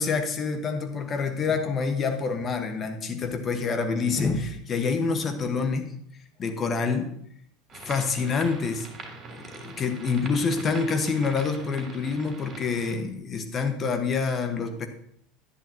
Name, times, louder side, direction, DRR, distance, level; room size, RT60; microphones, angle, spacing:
voice 1, 0.0-5.9 6.4-7.1 7.8-8.9 9.3-14.9, left 5 dB, 35° left, 7 dB, 1.4 m, -27 dB
sound 1, 7.7-12.9, right 4 dB, 35° right, 3.1 m, -42 dB
11.5 x 10.5 x 2.9 m, 0.69 s
hypercardioid pair, 80°, 0 cm